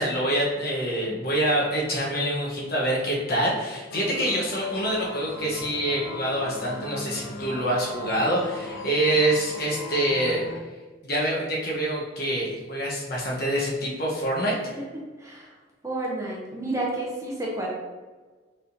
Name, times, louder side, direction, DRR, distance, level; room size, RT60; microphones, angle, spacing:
voice 1, 0.0-10.4 11.0-14.7, right 1 dB, 50° left, -4 dB, 1.0 m, -26 dB
sound 1, 3.9-10.6, left 2 dB, 80° left, 0.7 m, -38 dB
voice 2, 14.8-15.5 15.8-17.7, right 2 dB, 15° right, -3 dB, 0.6 m, -31 dB
4.6 x 3.6 x 2.7 m, 1.3 s
head